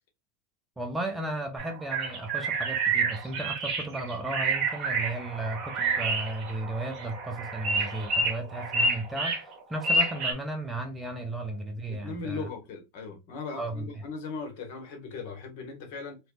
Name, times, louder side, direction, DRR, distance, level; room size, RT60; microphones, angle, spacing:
voice 1, 0.8-12.5 13.6-13.9, right 2 dB, 10° right, 0.8 m, -35 dB
sound 1, 1.6-10.3, right 3 dB, 40° right, 1.6 m, -29 dB
voice 2, 11.9-16.2, left 4 dB, 60° left, 1.3 m, -38 dB
3.2 x 3.1 x 2.3 m
hypercardioid pair, 115°, 0 cm